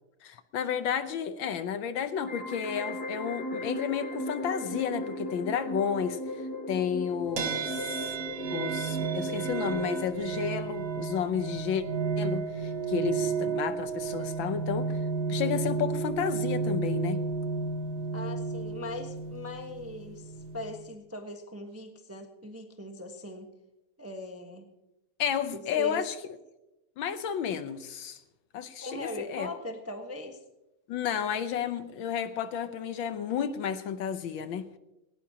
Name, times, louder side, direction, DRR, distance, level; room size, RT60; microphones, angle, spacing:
voice 1, 0.2-6.2 6.7-8.1 8.5-11.8 12.2-15.0 15.3-17.2 25.2-26.1 27.0-28.2 28.5-29.5 30.9-34.6, left 8 dB, 70° left, 1.5 m, -32 dB
sound 1, 2.2-10.2, equal, 25° left, 2.5 m, -37 dB
sound 2, 7.4-20.9, right 5 dB, 65° right, 1.8 m, -32 dB
voice 2, 18.1-23.5 24.0-24.7 25.7-26.0 28.8-30.4, left 1 dB, 10° right, 0.7 m, -40 dB
18.5 x 17.0 x 2.8 m
omnidirectional pair, 2.4 m